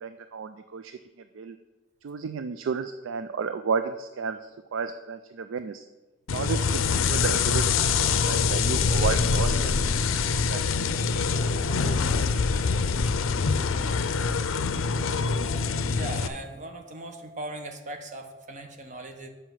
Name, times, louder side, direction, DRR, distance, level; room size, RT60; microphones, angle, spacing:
voice 1, 0.0-0.9 1.4-1.6 2.0-4.4 4.7-5.8 6.3-7.6 8.0-10.9 11.3-12.0, right 5 dB, 75° right, 10 dB, 0.4 m, -33 dB
sound 1, 6.3-16.3, left 5 dB, 90° left, 0.5 m, -25 dB
voice 2, 15.9-19.3, right 1 dB, 40° right, 5 dB, 0.9 m, -39 dB
7.4 x 5.5 x 6.2 m, 1.2 s
head